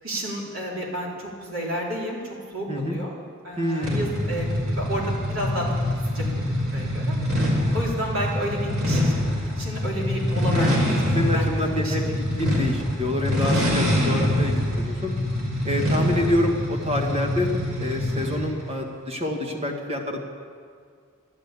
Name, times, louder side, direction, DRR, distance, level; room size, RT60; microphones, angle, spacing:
voice 1, 0.0-3.1 3.4-5.7 6.1-6.3 6.7-7.2 7.7-9.1 9.6-12.1 16.1-16.3, equal, 70° right, -4 dB, 3.9 m, -31 dB
voice 2, 2.7-3.0 3.6-4.1 10.5-10.8 11.1-12.1 12.4-15.1 15.6-17.5 17.8-20.2, left 1 dB, 30° right, 1 dB, 1.9 m, -27 dB
sound 1, 3.8-18.5, left 1 dB, 85° right, 3.9 m, -25 dB
12.0 x 12.0 x 8.4 m, 2.1 s
head